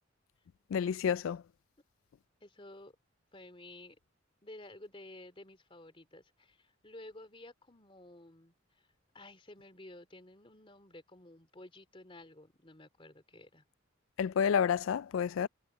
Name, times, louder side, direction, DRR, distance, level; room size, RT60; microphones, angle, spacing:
voice 1, 0.7-1.4 14.2-15.5, left 7 dB, 75° left, 0.3 m, -29 dB
voice 2, 2.4-2.9 3.3-4.0 4.4-8.9 9.1-13.6, left 1 dB, 25° left, 3.0 m, -53 dB
head